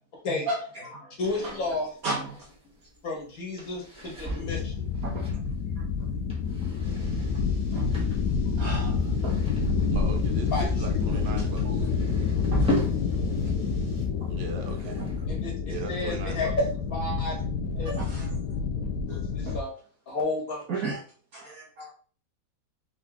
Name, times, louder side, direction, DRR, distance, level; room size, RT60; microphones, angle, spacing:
voice 1, 0.5-1.1 2.0-2.3 4.2-4.4 5.0-5.3 6.6-6.7 7.7-7.9 8.6-9.0 9.2-9.4 12.5-12.8 14.9-15.1 17.9-18.3 18.8-18.9 19.5-19.6 20.7-21.0 21.3-21.9, right 3 dB, 60° right, -3 dB, 1.2 m, -34 dB
voice 2, 1.2-2.0 3.0-4.9 10.5-10.9 15.3-16.5 16.9-17.4 17.8-18.0 19.1-19.7 20.1-20.6, left 3 dB, 55° left, -1 dB, 2.0 m, -32 dB
sound 1, 1.2-13.5 13.8-15.4, left 1 dB, 5° right, 1.7 m, -37 dB
sound 2, 4.4-19.6, left 5 dB, 75° left, 1.2 m, -28 dB
sound 3, 6.8-14.1, equal, 40° right, 0.5 m, -36 dB
voice 3, 9.9-11.9 14.3-15.1 15.7-16.5, right 5 dB, 80° right, 4 dB, 1.6 m, -39 dB
3.8 x 3.8 x 3.5 m, 0.43 s
omnidirectional pair, 1.9 m